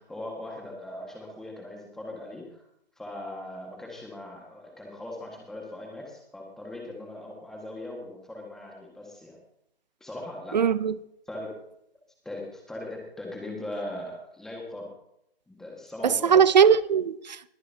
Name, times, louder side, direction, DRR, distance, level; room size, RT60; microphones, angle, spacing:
voice 1, 0.0-2.6 3.0-9.4 10.0-10.6 11.3-11.6 12.2-14.9 15.5-16.4, left 1 dB, ahead, 1.6 m, -39 dB
voice 2, 10.5-10.9 16.0-17.5, right 7 dB, 45° right, 0.6 m, -20 dB
21.5 x 9.3 x 2.8 m
hypercardioid pair, 165°, 31 cm